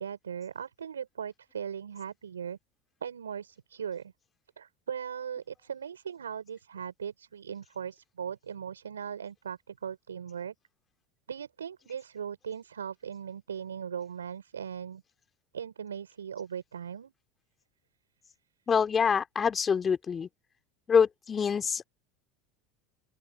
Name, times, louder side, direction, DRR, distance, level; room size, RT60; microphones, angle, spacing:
voice 1, 0.0-2.6 3.0-4.1 4.6-10.5 11.3-15.0 15.5-17.1, right 8 dB, 85° right, 6.9 m, -39 dB
voice 2, 18.7-20.3 20.9-21.9, left 6 dB, 30° left, 3.4 m, -25 dB
open air
hypercardioid pair, 75°, 0 cm